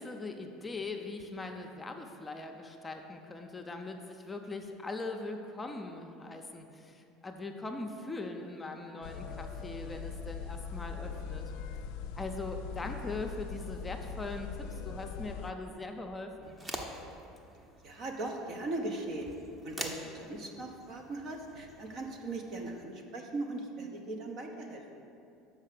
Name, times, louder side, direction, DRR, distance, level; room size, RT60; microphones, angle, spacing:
voice 1, 0.0-11.4 12.1-16.5, left 3 dB, 15° left, 4 dB, 0.7 m, -41 dB
sound 1, 9.0-15.5, left 6 dB, 60° left, 0.3 m, -41 dB
sound 2, 16.4-22.8, right 1 dB, 15° right, 0.9 m, -46 dB
voice 2, 17.8-19.3 19.6-25.0, right 2 dB, 50° right, 3 dB, 0.9 m, -39 dB
6.5 x 5.1 x 6.5 m, 2.6 s
figure-of-eight pair, 70°, 0 cm